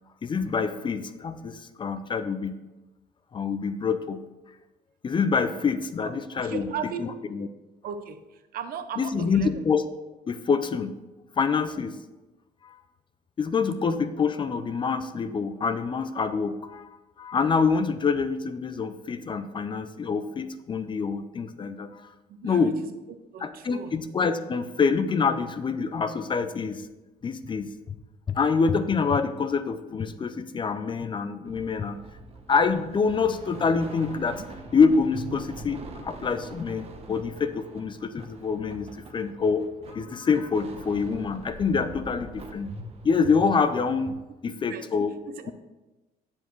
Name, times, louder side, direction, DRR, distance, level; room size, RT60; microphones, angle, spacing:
voice 1, 0.2-2.6 3.3-4.2 5.0-7.5 9.0-9.8 10.3-11.0 11.4-12.0 12.6-12.8 13.4-22.1 22.4-22.8 23.4-26.8 27.2-27.7 28.3-32.0 32.5-42.7 43.0-44.2 44.4-45.2, left 5 dB, 30° left, 10 dB, 0.4 m, -26 dB
voice 2, 6.0-7.1 7.8-8.2 8.5-9.6 22.4-22.7 23.3-23.9 44.5-44.8 45.4-45.5, right 7 dB, 60° right, 9 dB, 0.7 m, -36 dB
sound 1, 31.5-44.1, right 2 dB, 35° right, 0.9 m, -43 dB
7.9 x 7.0 x 3.1 m, 1.1 s
cardioid pair, 110°, 17 cm